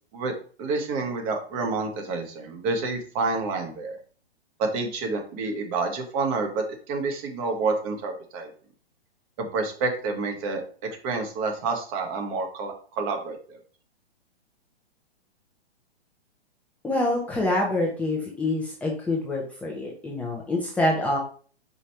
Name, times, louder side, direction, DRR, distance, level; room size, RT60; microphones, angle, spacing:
voice 1, 0.6-4.0 4.6-8.5 9.4-13.6, right 3 dB, 35° right, 4 dB, 1.4 m, -29 dB
voice 2, 16.8-21.2, left 2 dB, 5° left, -3 dB, 0.8 m, -26 dB
5.2 x 4.1 x 4.5 m, 0.42 s
figure-of-eight pair, 120°, 32 cm